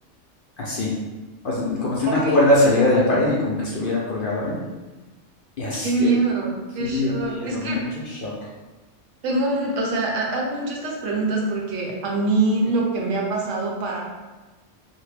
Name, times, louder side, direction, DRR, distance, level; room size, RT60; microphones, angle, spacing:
voice 1, 0.6-0.9 1.4-4.6 5.6-6.1 6.8-8.3, left 1 dB, 60° left, -5 dB, 0.6 m, -22 dB
voice 2, 2.0-2.4 5.8-7.8 9.2-14.0, right 2 dB, 80° right, -1 dB, 0.9 m, -24 dB
2.6 x 2.1 x 3.2 m, 1.2 s
omnidirectional pair, 1.3 m